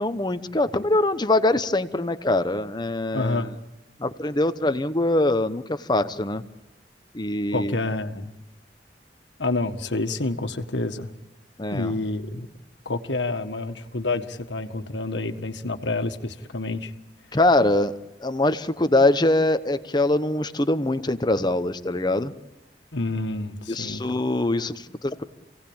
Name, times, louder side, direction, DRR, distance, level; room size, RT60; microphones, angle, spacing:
voice 1, 0.0-3.5 4.0-6.4 7.1-7.8 11.6-11.9 17.3-22.3 23.7-25.2, left 2 dB, 25° left, 11 dB, 0.9 m, -23 dB
voice 2, 3.1-3.6 7.5-8.3 9.4-11.1 11.7-12.5 12.8-16.9 22.9-24.0, left 2 dB, 85° left, 7 dB, 1.6 m, -28 dB
28.0 x 18.0 x 8.9 m, 1.0 s
head